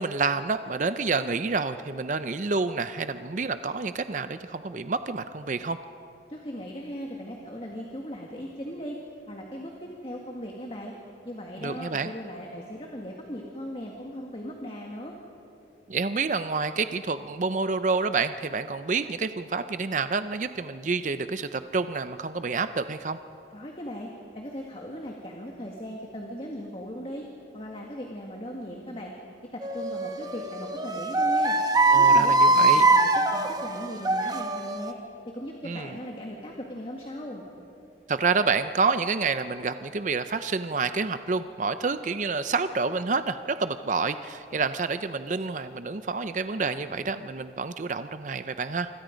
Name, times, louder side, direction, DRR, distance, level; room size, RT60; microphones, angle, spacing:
voice 1, 0.0-5.8 11.6-12.1 15.9-23.2 31.9-32.9 35.6-36.0 38.1-48.9, right 4 dB, 45° right, 10 dB, 0.5 m, -28 dB
voice 2, 6.3-9.0 9.3-10.9 11.2-15.2 23.5-24.1 24.3-27.3 27.5-29.1 29.5-31.6 31.9-35.0 35.3-37.5, equal, 30° left, 0 dB, 1.8 m, -38 dB
sound 1, 29.6-34.9, right 3 dB, 20° right, 1.0 m, -22 dB
27.0 x 25.5 x 5.2 m, 2.8 s
head